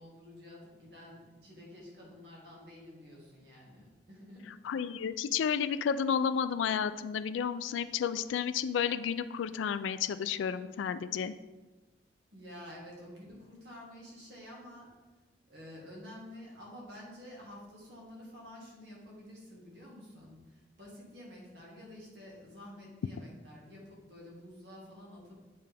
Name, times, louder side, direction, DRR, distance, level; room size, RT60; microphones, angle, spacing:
voice 1, 0.0-4.6 12.3-14.9 15.5-25.4, left 1 dB, 60° right, -4 dB, 1.8 m, -50 dB
voice 2, 4.6-11.3, left 7 dB, 90° left, 14 dB, 0.3 m, -31 dB
8.6 x 3.3 x 3.4 m, 1.2 s
head